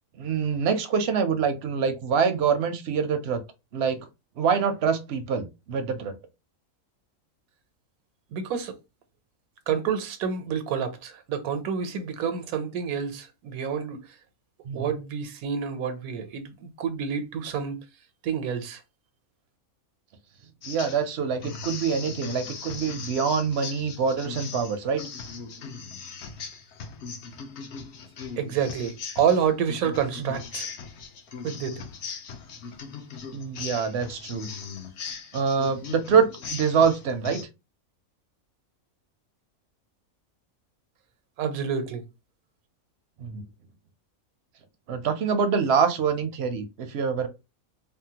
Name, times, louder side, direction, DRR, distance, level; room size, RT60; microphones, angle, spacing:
voice 1, 0.2-3.4 3.7-4.0 4.4-6.1 14.7-14.9 20.7-25.0 30.2-30.4 33.3-34.5 35.3-37.4 43.2-43.4 44.9-47.3, right 6 dB, 65° right, 0.7 m, -25 dB
voice 2, 8.3-8.7 9.7-14.0 14.7-17.8 18.2-18.8 28.4-30.7 31.4-31.8 41.4-42.0, right 7 dB, 90° right, 1.1 m, -28 dB
sound 1, 20.6-21.1 21.4-37.4, left 5 dB, 60° left, 0.8 m, -39 dB
3.6 x 2.1 x 2.8 m
omnidirectional pair, 1.5 m